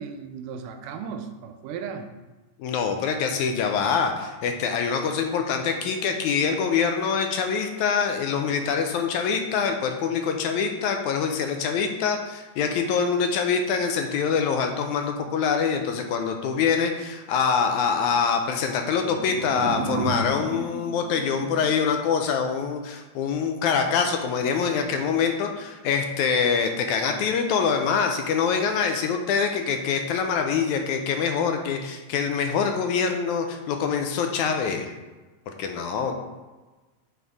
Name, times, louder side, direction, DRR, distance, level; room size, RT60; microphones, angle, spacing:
voice 1, 0.0-2.1, right 6 dB, 85° right, 7 dB, 2.2 m, -36 dB
voice 2, 2.6-34.9 35.6-36.1, left 6 dB, 80° left, 4 dB, 1.9 m, -25 dB
sound 1, 18.7-21.8, right 3 dB, 50° right, 2.8 m, -33 dB
9.3 x 4.0 x 3.6 m, 1.2 s
omnidirectional pair, 3.6 m